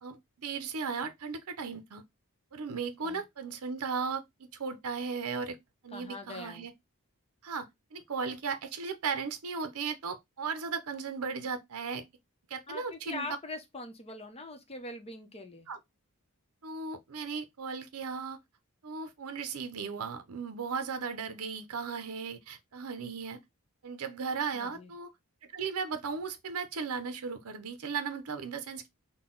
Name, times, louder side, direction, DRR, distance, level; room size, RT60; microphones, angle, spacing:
voice 1, 0.0-2.0 2.5-5.6 5.8-6.7 7.4-12.0 12.5-13.3 15.7-15.8 16.6-18.4 18.8-23.4 23.8-25.1 25.5-28.9, right 5 dB, 70° right, 0.6 m, -36 dB
voice 2, 5.9-6.7 12.7-15.7 24.5-24.9, left 2 dB, 25° left, 0.8 m, -42 dB
3.8 x 2.2 x 3.7 m
head